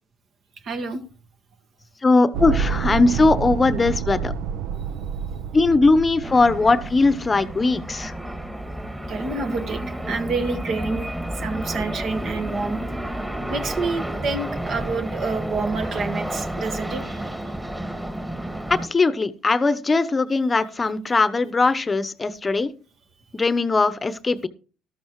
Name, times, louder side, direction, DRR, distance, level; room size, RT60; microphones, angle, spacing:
voice 1, 0.6-1.0 5.0-5.1 9.1-12.8 13.5-17.2, right 3 dB, 55° right, 8 dB, 1.7 m, -28 dB
voice 2, 2.0-4.3 5.5-8.1 18.9-22.7 23.3-24.5, left 3 dB, 25° left, 15 dB, 0.8 m, -19 dB
sound 1, 2.3-8.6, right 6 dB, 70° right, 0.7 m, -29 dB
sound 2, 6.2-18.9, right 1 dB, 10° right, 1.9 m, -31 dB
13.5 x 12.5 x 3.1 m, 0.38 s
hypercardioid pair, 60°, 0 cm